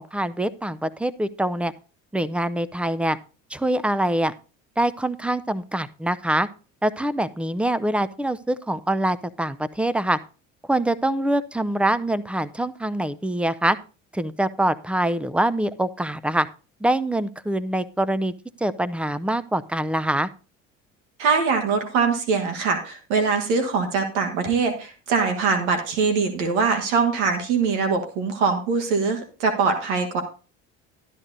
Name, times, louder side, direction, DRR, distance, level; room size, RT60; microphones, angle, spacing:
voice 1, 0.0-1.7 2.1-3.2 3.5-4.3 4.8-6.5 6.8-10.2 10.7-13.8 14.1-16.5 16.8-18.3 18.6-20.3, right 1 dB, 5° right, 15 dB, 0.5 m, -24 dB
voice 2, 21.2-30.2, right 5 dB, 85° right, 5 dB, 1.4 m, -22 dB
12.5 x 10.5 x 2.7 m, 0.35 s
supercardioid pair, 75°, 34 cm